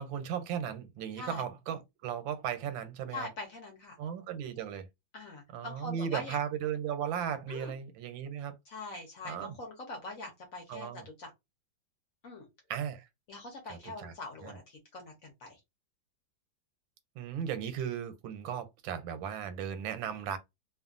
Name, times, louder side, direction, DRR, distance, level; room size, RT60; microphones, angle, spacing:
voice 1, 0.0-3.3 4.0-4.9 5.5-8.5 9.2-9.6 10.7-11.0 12.7-13.1 13.7-14.1 14.4-14.6 17.2-20.4, right 8 dB, 90° right, 1.4 m, -36 dB
voice 2, 3.1-4.0 5.1-6.4 7.5-7.7 8.7-11.3 12.2-12.5 13.3-15.6, left 2 dB, 55° left, 1.0 m, -43 dB
2.9 x 2.4 x 2.4 m
omnidirectional pair, 2.1 m